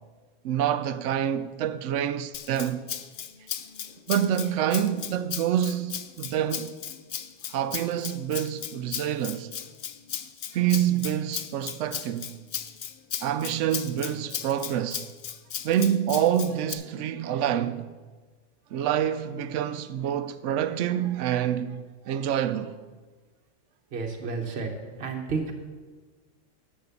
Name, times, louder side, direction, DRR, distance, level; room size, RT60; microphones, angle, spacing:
voice 1, 0.4-2.9 4.1-6.8 7.5-9.5 10.5-12.3 13.2-15.1 15.6-17.9 18.7-22.8, right 10 dB, 80° right, 0.9 m, -27 dB
Rattle (instrument), 2.3-16.7, left 9 dB, 55° left, 0.6 m, -36 dB
voice 2, 23.9-24.7 25.0-25.5, right 4 dB, 55° right, 1.3 m, -31 dB
10.5 x 6.6 x 7.0 m
omnidirectional pair, 1.3 m